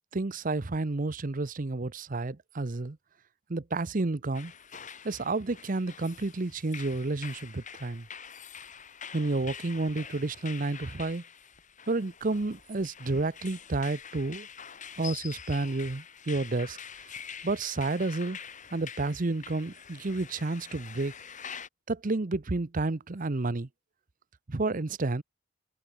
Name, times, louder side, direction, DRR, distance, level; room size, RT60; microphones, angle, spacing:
voice 1, 0.1-3.0 3.5-4.5 5.0-8.1 9.1-11.2 11.9-14.5 15.0-16.8 17.4-18.4 18.7-21.1 21.9-23.7 24.5-25.2, right 2 dB, 40° right, 0.8 m, -30 dB
sound 1, 4.3-21.7, left 7 dB, 40° left, 4.1 m, -46 dB
head